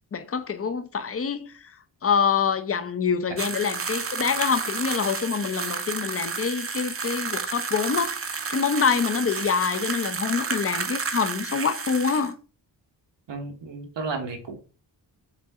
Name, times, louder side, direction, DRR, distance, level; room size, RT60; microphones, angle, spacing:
voice 1, 0.1-1.5 2.0-12.4, left 6 dB, 35° left, 0.5 m, -26 dB
sound 1, 3.4-12.3, right 5 dB, 35° right, 0.5 m, -31 dB
voice 2, 13.3-14.6, right 4 dB, 80° right, 1.1 m, -33 dB
5.1 x 2.7 x 3.5 m
wide cardioid pair, 85°, 42 cm